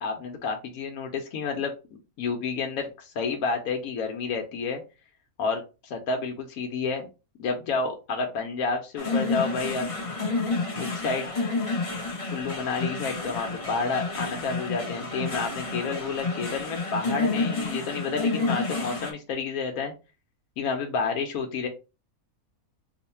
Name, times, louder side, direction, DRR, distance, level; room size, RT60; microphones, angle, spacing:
voice 1, 0.0-1.7 2.2-4.8 5.4-7.1 7.4-9.9 10.8-11.3 12.3-19.9 20.6-21.7, left 4 dB, 75° left, 2 dB, 1.1 m, -30 dB
sound 1, 9.0-19.1, left 3 dB, 30° left, 0.7 m, -30 dB
3.1 x 2.1 x 4.1 m, 0.30 s
omnidirectional pair, 1.5 m